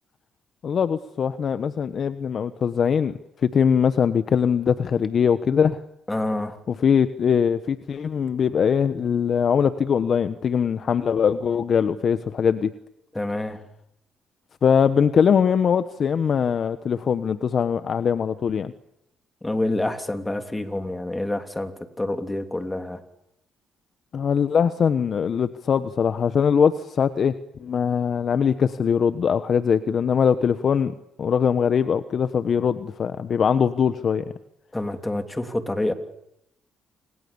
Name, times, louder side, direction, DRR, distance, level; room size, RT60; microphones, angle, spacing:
voice 1, 0.6-5.8 6.7-12.7 14.6-18.7 24.1-27.3 27.6-34.2, left 7 dB, 55° left, 11 dB, 1.3 m, -22 dB
voice 2, 6.1-6.6 13.1-13.6 19.4-23.0 34.7-35.9, left 1 dB, 15° left, 7 dB, 3.2 m, -27 dB
29.0 x 27.0 x 7.1 m, 0.81 s
cardioid pair, 90°, 0 cm